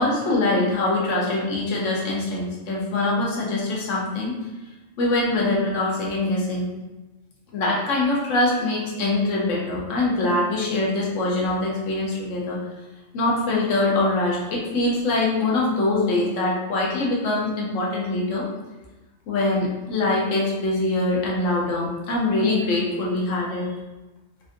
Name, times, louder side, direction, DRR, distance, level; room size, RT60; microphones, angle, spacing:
voice 1, 0.0-4.3 5.0-6.7 7.5-12.6 13.1-18.5 19.3-23.7, left 2 dB, 75° left, -4 dB, 1.1 m, -23 dB
3.3 x 2.5 x 2.5 m, 1.1 s
omnidirectional pair, 1.3 m